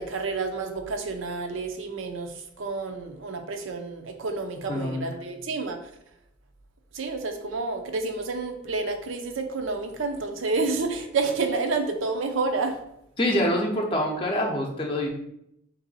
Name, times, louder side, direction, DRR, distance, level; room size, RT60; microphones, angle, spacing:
voice 1, 0.0-5.8 6.9-12.8, right 3 dB, 80° right, 5 dB, 0.6 m, -29 dB
voice 2, 4.7-5.0 13.2-15.1, left 1 dB, 25° left, 0 dB, 0.6 m, -25 dB
3.6 x 2.7 x 4.0 m, 0.78 s
head